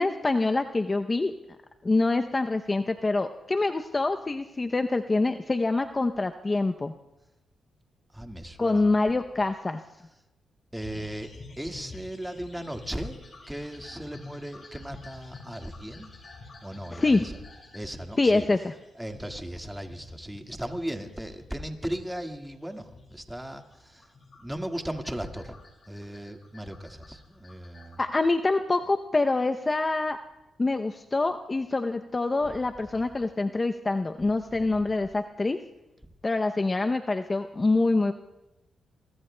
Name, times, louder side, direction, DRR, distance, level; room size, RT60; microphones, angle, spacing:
voice 1, 0.0-1.3 1.8-6.9 8.6-9.8 17.0-17.3 18.2-18.7 28.0-30.2 30.6-35.6 36.2-38.1, left 3 dB, 30° left, 6 dB, 0.6 m, -25 dB
voice 2, 8.1-8.9 10.7-13.2 13.5-16.1 16.6-17.4 17.7-18.5 18.9-25.6 25.9-28.0 32.4-32.6 34.5-34.8, right 1 dB, 5° right, 5 dB, 1.7 m, -37 dB
sound 1, 10.7-28.0, left 3 dB, 45° left, 5.9 m, -50 dB
28.5 x 23.0 x 2.2 m, 0.93 s
cardioid pair, 70°, 0 cm